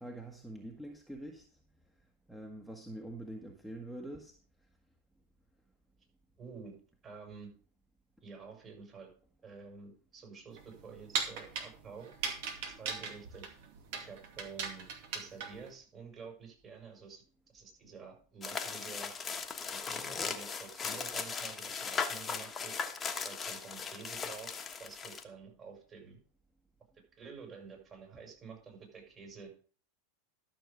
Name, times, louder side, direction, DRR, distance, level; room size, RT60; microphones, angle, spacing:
voice 1, 0.0-1.5 2.3-4.4, right 1 dB, 5° right, 1 dB, 1.5 m, -45 dB
voice 2, 6.4-6.8 7.0-7.5 8.2-9.1 9.4-12.3 12.6-13.5 14.0-17.2 17.5-19.1 19.7-22.8 23.2-26.2 27.1-29.5, right 5 dB, 30° right, 2 dB, 5.6 m, -50 dB
sound 1, 10.5-15.7, right 5 dB, 60° right, 2.3 m, -39 dB
sound 2, 18.4-25.2, left 5 dB, 25° left, 1.3 m, -38 dB
12.5 x 6.4 x 5.1 m, 0.41 s
hypercardioid pair, 90°, 0 cm